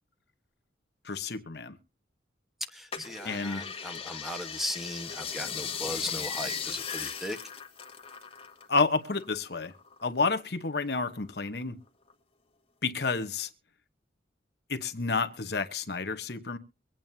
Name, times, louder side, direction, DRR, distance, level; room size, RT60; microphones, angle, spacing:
voice 1, 1.0-1.8 3.2-3.6 8.7-9.7 10.0-11.8 12.8-13.5 14.7-16.6, left 4 dB, 55° left, 1.0 m, -30 dB
voice 2, 2.7-7.4, equal, ahead, 1.2 m, -37 dB
sound 1, 2.9-8.8 9.0-10.3 10.8-11.6 12.1-12.2, left 7 dB, 30° left, 1.4 m, -37 dB
24.0 x 9.0 x 2.7 m
head